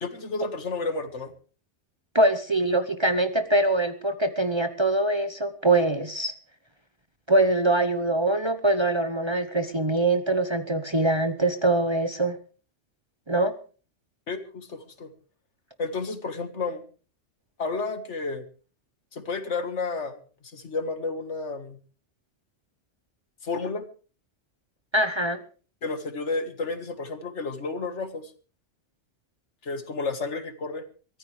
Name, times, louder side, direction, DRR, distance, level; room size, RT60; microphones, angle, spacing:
voice 1, 0.0-1.3 14.3-15.1 15.8-16.8 17.6-18.4 19.1-20.2 20.4-21.8 23.4-23.9 25.8-28.3 29.6-30.8, left 3 dB, 70° left, 9 dB, 2.0 m, -31 dB
voice 2, 2.1-6.3 7.3-12.4 13.3-13.5 24.9-25.4, right 2 dB, 25° right, 9 dB, 0.9 m, -23 dB
23.0 x 15.0 x 3.3 m, 0.38 s
omnidirectional pair, 1.2 m